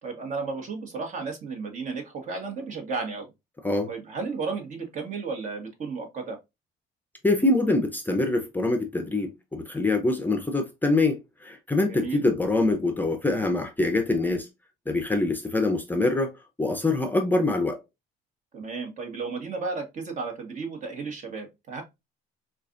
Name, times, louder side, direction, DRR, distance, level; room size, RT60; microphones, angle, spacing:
voice 1, 0.0-3.3 3.9-6.4 11.9-12.2 18.5-21.8, right 4 dB, 45° right, 1.5 m, -33 dB
voice 2, 7.2-14.5 14.9-17.8, left 2 dB, 10° left, 0.6 m, -24 dB
4.6 x 2.5 x 2.5 m
cardioid pair, 110°, 17 cm